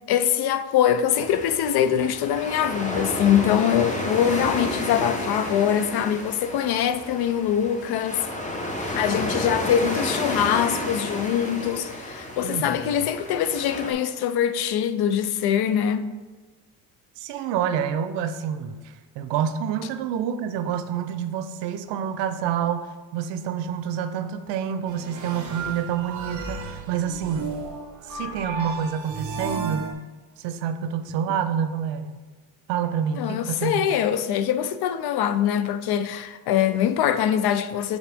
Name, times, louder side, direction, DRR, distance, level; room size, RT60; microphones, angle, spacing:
voice 1, 0.1-8.2 9.0-16.1 33.2-38.0, left 9 dB, 65° left, 0.6 m, -23 dB
sound 1, 1.1-13.9, left 1 dB, 15° left, 0.9 m, -31 dB
voice 2, 12.4-13.0 17.2-27.6 28.1-30.0 30.4-32.1 32.7-33.8, right 8 dB, 85° right, 0.6 m, -28 dB
sound 2, 24.9-29.9, right 4 dB, 45° right, 1.1 m, -34 dB
7.3 x 4.0 x 3.5 m
cardioid pair, 115°, 42 cm